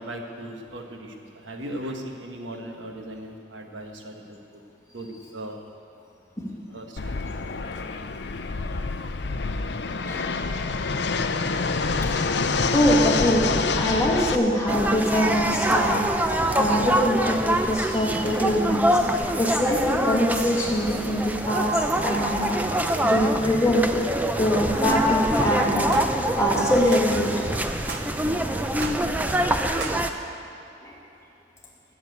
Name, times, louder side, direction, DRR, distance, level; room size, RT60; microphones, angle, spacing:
voice 1, 0.0-4.4 4.9-5.6 6.7-7.2, right 1 dB, 75° right, 3 dB, 1.3 m, -37 dB
Fixed-wing aircraft airplane, 7.0-14.3, left 4 dB, 60° left, 0.5 m, -26 dB
voice 2, 12.7-16.0 16.5-18.9 19.4-21.7 22.0-22.6 23.0-23.9 24.4-25.9 26.4-27.3, equal, 15° left, -3 dB, 1.7 m, -23 dB
sound 1, 14.7-30.1, right 1 dB, 10° right, 0.4 m, -25 dB
sound 2, 25.9-26.1 26.9-27.1 27.9-28.1 28.8-29.0 29.8-30.0, right 5 dB, 55° right, 0.7 m, -36 dB
12.0 x 7.3 x 8.4 m, 2.7 s
head